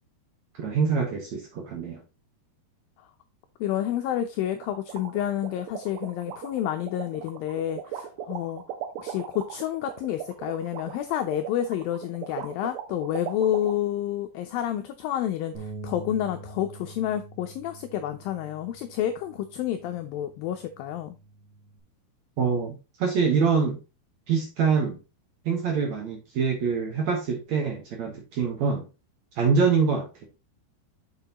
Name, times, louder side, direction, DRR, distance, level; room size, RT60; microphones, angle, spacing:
voice 1, 0.5-2.0 22.4-23.8 24.3-25.0 25.5-28.9 29.4-30.1, right 5 dB, 65° right, 1.8 m, -25 dB
voice 2, 3.6-8.6 9.0-21.2, left 11 dB, 85° left, 2.1 m, -29 dB
sound 1, 4.6-13.7, right 11 dB, 80° right, 2.7 m, -37 dB
Bass guitar, 15.5-21.8, right 3 dB, 45° right, 1.6 m, -45 dB
6.9 x 6.5 x 2.9 m
omnidirectional pair, 4.7 m